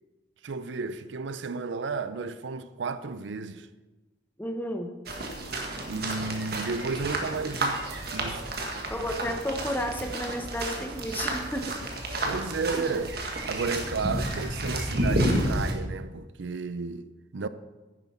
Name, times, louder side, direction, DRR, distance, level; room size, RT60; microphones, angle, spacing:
voice 1, 0.4-3.7 5.9-7.8 8.1-8.5 12.2-13.2 13.4-17.5, right 4 dB, 80° right, 0.5 m, -33 dB
voice 2, 4.4-4.9 8.9-11.7 12.7-12.8, equal, 10° left, 0.9 m, -32 dB
sound 1, 5.1-15.7, right 1 dB, 55° right, 1.6 m, -31 dB
11.0 x 9.8 x 4.3 m
head